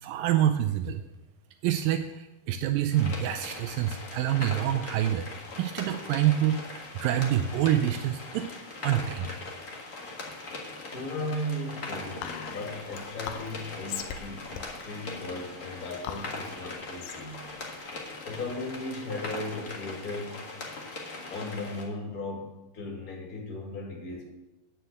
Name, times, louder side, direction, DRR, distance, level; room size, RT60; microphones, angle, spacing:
voice 1, 0.0-1.0 1.6-5.3 5.6-8.5 8.8-9.4, right 11 dB, 90° right, 7 dB, 1.9 m, -27 dB
sound 1, 2.9-21.8, left 3 dB, 55° left, 1.0 m, -40 dB
voice 2, 10.9-17.4 18.2-20.5 21.3-22.5 22.7-24.2, left 1 dB, 30° left, -1 dB, 1.7 m, -36 dB
Whispering, 12.2-18.9, left 9 dB, 80° left, 2.5 m, -42 dB
9.5 x 7.6 x 8.0 m, 1.0 s
omnidirectional pair, 4.7 m